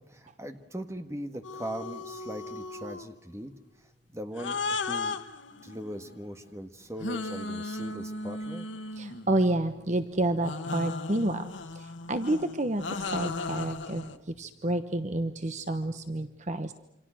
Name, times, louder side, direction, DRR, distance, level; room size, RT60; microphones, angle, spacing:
voice 1, 0.0-3.5 4.1-5.2 5.6-8.7, equal, 15° right, 7 dB, 1.6 m, -40 dB
sound 1, 1.4-3.1 4.4-6.2 7.0-9.5 10.4-14.2, left 3 dB, 90° left, 1.4 m, -36 dB
voice 2, 9.0-11.5 11.7-16.7, right 1 dB, 40° right, 10 dB, 1.0 m, -29 dB
28.0 x 26.0 x 6.3 m, 0.78 s
head